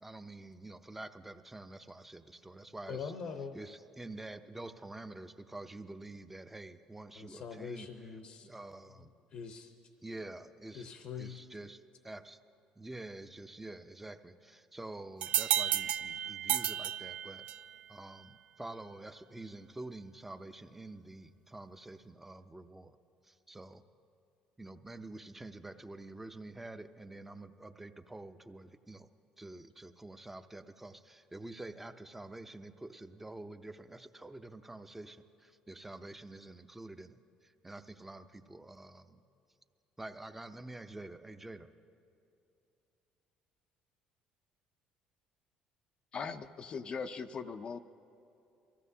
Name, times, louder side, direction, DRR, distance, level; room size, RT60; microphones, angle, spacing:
voice 1, 0.0-3.1 3.5-7.9 8.4-9.1 10.0-10.9 11.2-12.4 12.8-17.5 17.9-23.0 23.2-23.8 24.6-29.1 29.4-39.2 40.0-41.7, right 2 dB, 10° right, 9 dB, 0.6 m, -47 dB
voice 2, 2.9-3.5 7.1-8.5 9.3-9.7 10.7-11.4, left 6 dB, 60° left, 6 dB, 0.8 m, -43 dB
sound 1, 15.2-17.8, right 10 dB, 65° right, 0.3 m, -32 dB
voice 3, 46.1-47.8, left 5 dB, 40° left, 8 dB, 0.5 m, -40 dB
23.0 x 15.0 x 2.8 m, 2.7 s
cardioid pair, 95°, 2 cm